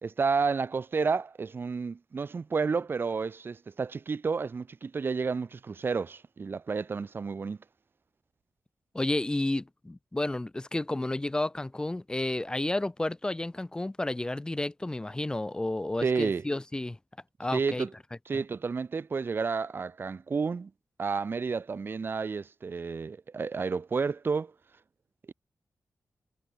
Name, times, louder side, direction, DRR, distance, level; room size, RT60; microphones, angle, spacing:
voice 1, 0.0-7.6 16.0-16.5 17.5-17.9 18.3-20.7 21.0-24.5, right 5 dB, 40° right, 1.0 m, -31 dB
voice 2, 8.9-17.0 17.4-17.9, left 2 dB, 15° left, 2.1 m, -31 dB
wide cardioid pair, 160°, 6 cm